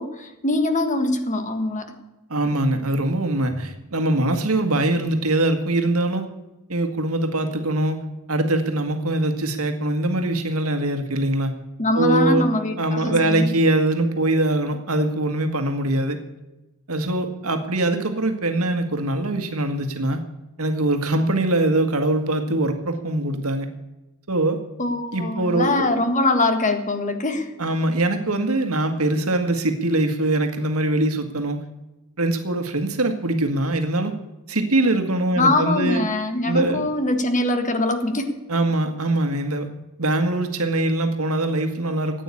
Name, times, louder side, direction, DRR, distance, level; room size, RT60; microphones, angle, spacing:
voice 1, 0.0-1.9 11.8-13.5 24.8-27.5 35.3-38.4, left 2 dB, 35° left, 8 dB, 1.7 m, -23 dB
voice 2, 2.3-6.2 6.7-8.0 8.3-11.5 11.9-12.4 12.8-16.2 16.9-20.2 20.6-23.7 24.3-24.6 25.1-25.9 27.6-31.6 32.2-34.1 34.5-36.0 36.5-36.9 38.5-39.7 40.0-42.2, right 1 dB, 70° right, 7 dB, 1.9 m, -22 dB
14.5 x 9.2 x 8.6 m, 1.0 s
head